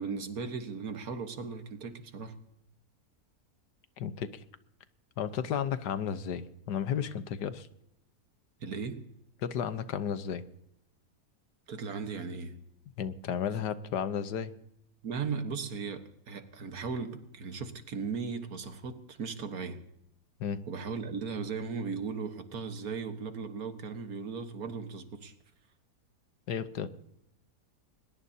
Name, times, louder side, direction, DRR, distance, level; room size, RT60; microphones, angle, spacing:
voice 1, 0.0-2.4 8.6-9.1 11.7-12.6 15.0-19.8 20.7-25.3, right 5 dB, 60° right, 1.7 m, -37 dB
voice 2, 4.0-4.4 5.2-7.7 9.4-10.4 13.0-14.5 20.4-20.6 26.5-26.9, left 8 dB, 85° left, 1.5 m, -33 dB
21.5 x 21.0 x 2.8 m
omnidirectional pair, 1.8 m